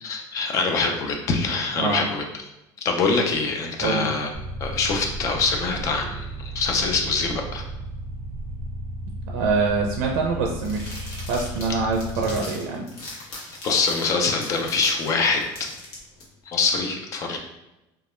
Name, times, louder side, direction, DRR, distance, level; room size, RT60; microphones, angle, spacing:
voice 1, 0.0-2.2 2.8-4.3 4.6-7.6 13.6-15.4 16.5-17.4, left 4 dB, 35° left, 3 dB, 0.3 m, -24 dB
voice 2, 3.8-4.1 9.3-12.8, right 4 dB, 80° right, 0 dB, 0.4 m, -25 dB
sound 1, 4.3-12.4, right 1 dB, 50° left, 1.2 m, -34 dB
sound 2, 10.6-16.2, left 2 dB, 75° left, 0.9 m, -40 dB
2.2 x 2.1 x 3.0 m, 0.95 s
cardioid pair, 175°, 10 cm